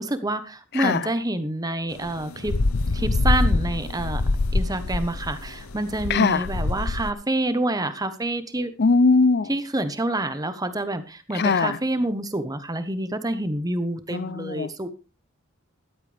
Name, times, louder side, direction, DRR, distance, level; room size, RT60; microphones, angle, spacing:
voice 1, 0.0-2.6 2.9-4.2 4.5-8.7 9.5-14.9, right 1 dB, 15° right, 1.1 m, -27 dB
sound 1, 2.0-7.1, left 2 dB, 85° left, 0.9 m, -24 dB
voice 2, 6.1-6.5 8.8-9.5 11.3-11.8 14.1-14.7, left 4 dB, 50° left, 0.5 m, -20 dB
14.0 x 12.5 x 3.4 m
head